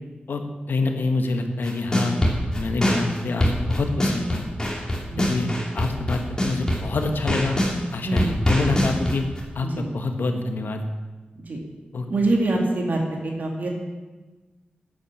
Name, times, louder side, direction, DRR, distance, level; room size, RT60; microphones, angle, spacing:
voice 1, 0.7-2.2 2.5-4.5 5.2-7.6 7.9-9.2 9.5-10.8 11.9-12.1, left 3 dB, 80° left, 5 dB, 1.4 m, -26 dB
sound 1, 1.6-7.7 8.2-9.4, equal, 20° left, 3.0 m, -23 dB
voice 2, 8.1-8.4 9.6-9.9 11.5-11.6 12.1-13.7, right 2 dB, 60° right, 0 dB, 2.3 m, -24 dB
11.5 x 9.0 x 7.4 m, 1.2 s
wide cardioid pair, 130°, 3 cm